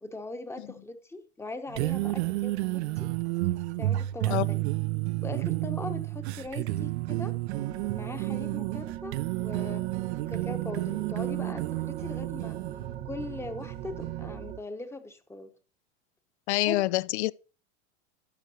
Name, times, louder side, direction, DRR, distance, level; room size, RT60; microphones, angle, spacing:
voice 1, 0.0-2.6 3.0-3.1 3.8-4.7 5.2-7.3 7.9-9.9 10.3-12.6 13.0-15.5 16.6-16.8, left 2 dB, 5° left, 0.9 m, -40 dB
sound 1, 1.7-14.3, right 18 dB, 65° right, 0.6 m, -31 dB
sound 2, 7.5-14.6, right 11 dB, 20° right, 0.5 m, -41 dB
voice 2, 16.5-17.3, left 18 dB, 70° left, 0.6 m, -26 dB
12.0 x 8.1 x 2.9 m
supercardioid pair, 135°, 35 cm